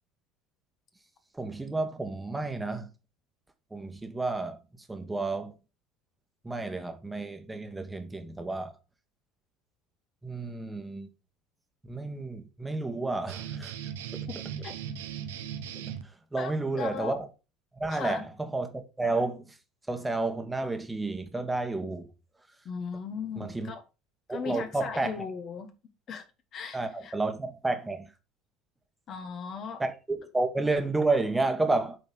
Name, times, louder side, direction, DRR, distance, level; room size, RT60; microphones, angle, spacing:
voice 1, 1.3-2.9 3.7-4.6 4.9-5.5 6.4-8.7 10.2-11.1 11.9-13.7 14.1-14.3 15.7-15.9 16.3-17.2 17.8-19.6 19.9-22.1 23.4-23.7 24.3-25.2 26.7-28.1 29.8-32.0, right 2 dB, 10° right, 1.4 m, -31 dB
sound 1, 13.3-16.0, right 9 dB, 75° right, 0.8 m, -38 dB
voice 2, 14.3-14.7 16.4-17.2 17.9-18.2 22.6-23.8 24.3-25.7 26.1-26.2 26.5-27.1 29.1-29.8, left 6 dB, 45° left, 1.4 m, -37 dB
7.6 x 4.2 x 5.7 m
figure-of-eight pair, 65°, 0 cm